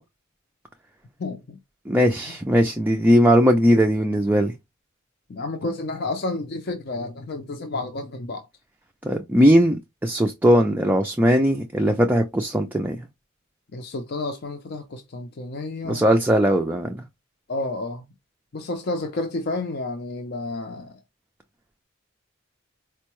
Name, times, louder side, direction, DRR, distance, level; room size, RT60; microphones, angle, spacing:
voice 1, 1.2-1.6 5.3-8.5 13.7-16.0 17.5-18.1 18.5-20.9, left 2 dB, 50° left, 0.5 m, -30 dB
voice 2, 1.9-4.5 9.0-9.8 10.0-13.0 15.9-17.0, equal, 10° right, 0.3 m, -19 dB
4.4 x 2.2 x 3.0 m
head